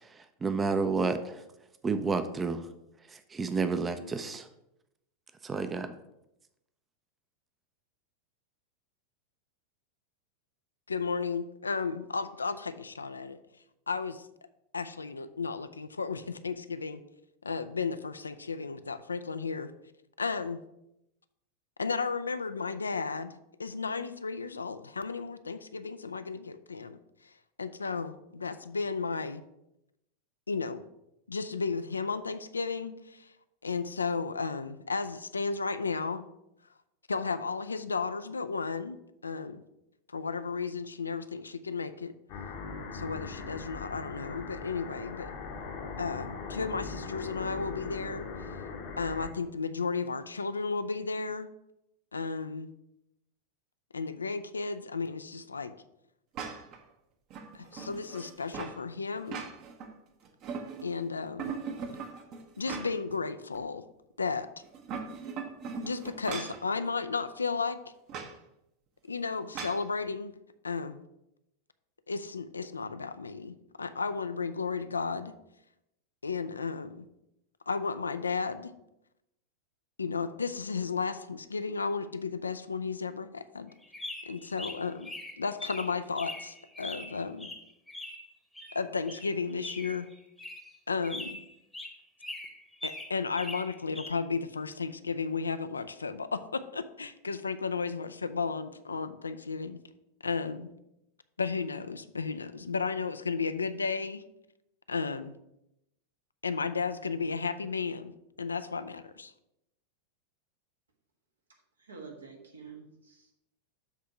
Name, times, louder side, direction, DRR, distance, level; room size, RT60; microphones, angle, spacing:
voice 1, 0.0-1.4 1.8-2.7 3.1-4.5 5.4-6.0, right 4 dB, 15° right, 9 dB, 0.5 m, -30 dB
voice 2, 10.9-13.4 13.9-14.3 14.7-17.0 17.4-19.7 20.2-20.6 21.8-23.3 23.6-27.0 27.6-29.4 30.5-30.8 31.3-33.3 33.6-36.3 37.1-39.0 39.2-39.6 40.1-42.1 42.9-45.3 46.0-48.3 49.0-51.5 52.1-52.7 53.9-55.8 57.5-59.4 60.8-61.5 62.6-63.8 64.2-64.5 65.8-67.8 69.1-70.3 70.6-71.0 72.1-75.3 76.2-77.1 77.7-78.7 80.0-83.7 84.3-85.1 85.4-87.5 88.7-90.1 90.9-91.4 92.8-99.8 100.2-100.7 101.4-104.2 104.9-105.3 106.4-108.1 108.4-109.3, left 4 dB, 75° left, 12 dB, 0.4 m, -33 dB
sound 1, 42.3-49.3, left 4 dB, 50° left, 0.9 m, -40 dB
sound 2, 56.3-56.8 57.3-58.8 59.2-59.9 60.2-61.0 61.4-63.1 63.5-63.6 64.6-66.6 68.1-68.3 69.5-69.8, right 5 dB, 40° right, 0.9 m, -39 dB
sound 3, 83.8-88.3 88.5-90.8 91.0-92.0 92.2-94.1, left 1 dB, 5° left, 1.0 m, -42 dB
voice 3, 111.8-113.3, right 5 dB, 75° right, 1 dB, 1.4 m, -48 dB
7.3 x 3.7 x 5.7 m, 0.85 s
figure-of-eight pair, 90°, 0 cm